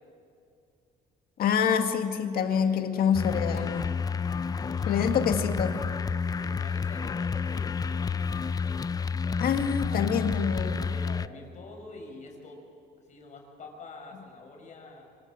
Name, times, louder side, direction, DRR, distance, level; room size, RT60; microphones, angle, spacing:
voice 1, 1.4-3.8 4.9-5.8 9.4-10.8, left 7 dB, 60° left, 6 dB, 2.1 m, -26 dB
voice 2, 2.4-3.9 4.7-5.6 6.4-8.1 9.8-12.6 13.1-15.0, left 3 dB, 45° left, 1 dB, 6.2 m, -47 dB
sound 1, 3.1-11.3, left 5 dB, 20° left, 0.5 m, -30 dB
25.5 x 24.0 x 7.7 m, 2.4 s
cardioid pair, 110°, 17 cm